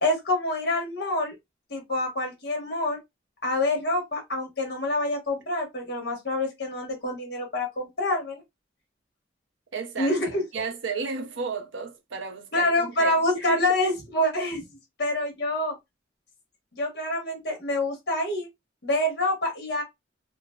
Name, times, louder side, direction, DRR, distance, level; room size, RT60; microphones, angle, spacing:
voice 1, 0.0-1.3 1.7-3.0 3.4-8.4 10.0-10.4 12.5-14.6 15.0-15.7 16.8-18.5 18.8-19.8, left 1 dB, 55° left, 1.4 m, -26 dB
voice 2, 9.7-10.1 10.5-13.2 13.5-13.8, right 4 dB, 85° right, 0.6 m, -33 dB
3.8 x 2.1 x 2.3 m
head